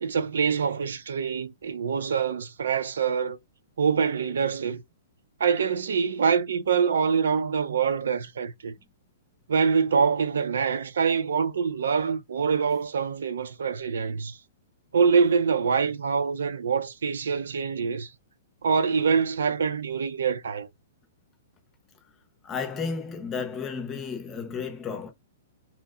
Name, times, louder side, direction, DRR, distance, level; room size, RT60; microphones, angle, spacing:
voice 1, 0.0-3.4 3.8-4.8 5.4-8.7 9.5-14.4 14.9-18.1 18.6-20.7, right 6 dB, 90° right, 0.5 m, -25 dB
voice 2, 22.4-25.1, left 5 dB, 15° left, 0.5 m, -33 dB
2.8 x 2.1 x 3.5 m
hypercardioid pair, 180°, 0 cm